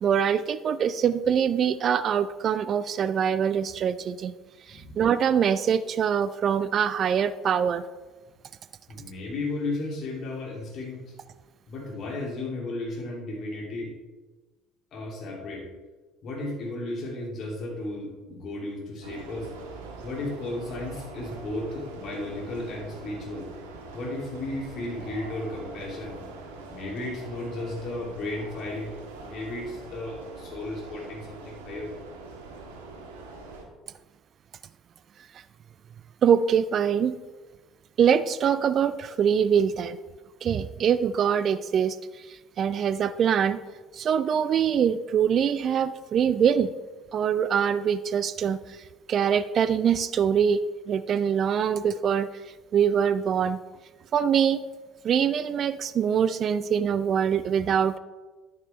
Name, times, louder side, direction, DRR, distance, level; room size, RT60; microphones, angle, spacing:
voice 1, 0.0-4.3 4.7-7.8 36.2-37.2 38.0-40.0 40.4-43.6 43.9-46.7 47.1-50.6 50.9-53.6 54.1-54.6 55.0-58.0, right 8 dB, 45° right, 14 dB, 0.4 m, -24 dB
voice 2, 4.7-5.0 8.9-11.0 11.7-13.9 14.9-15.6 16.2-19.5 20.0-23.5 23.9-26.2 26.7-31.9, left 2 dB, 50° left, -3 dB, 2.9 m, -34 dB
sound 1, 19.0-33.6, right 3 dB, 75° right, 1.5 m, -43 dB
11.0 x 9.4 x 3.5 m, 1.3 s
figure-of-eight pair, 60°, 0 cm